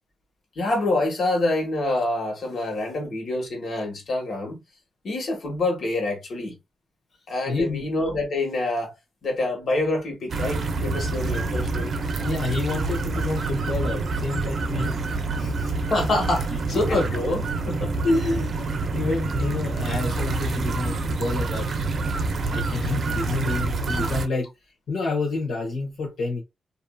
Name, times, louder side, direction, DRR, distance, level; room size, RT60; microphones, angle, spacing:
voice 1, 0.5-4.6 5.0-6.5 7.3-8.9 9.2-11.9 14.8-15.0 15.9-17.9, left 2 dB, 65° left, 1.4 m, -26 dB
voice 2, 7.5-7.8 12.2-14.9 15.4-15.7 16.9-17.0 18.0-21.7 22.5-24.5 24.9-26.4, left 3 dB, 85° left, 0.9 m, -28 dB
sound 1, 10.3-24.3, right 3 dB, 60° right, 0.5 m, -27 dB
2.7 x 2.6 x 2.2 m
cardioid pair, 85°, 0 cm